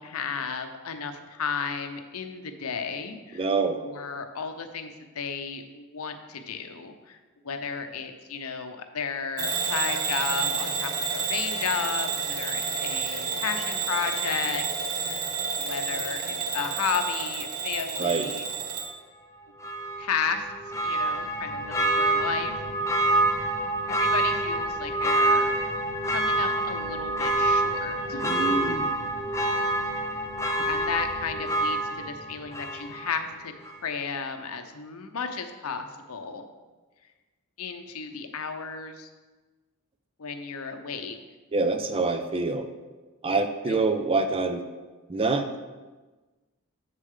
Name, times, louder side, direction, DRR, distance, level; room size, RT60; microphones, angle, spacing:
voice 1, 0.0-3.5 3.8-7.2 7.4-14.6 15.0-15.3 15.5-18.5 20.0-20.5 20.8-22.5 22.8-23.0 23.9-25.5 26.0-28.3 30.6-36.4 37.6-39.1 40.2-41.2 43.7-43.9, left 5 dB, 70° left, 7 dB, 0.7 m, -33 dB
voice 2, 3.3-3.8 18.0-18.3 28.2-28.9 41.5-42.7 43.2-44.6 45.1-45.6, right 3 dB, 25° right, 8 dB, 0.4 m, -26 dB
Bell / Alarm, 9.4-18.9, right 5 dB, 85° right, 1.1 m, -30 dB
Church bell, 19.6-33.3 33.6-33.7, right 2 dB, 15° left, 0.8 m, -27 dB
7.5 x 6.5 x 3.7 m, 1.3 s
head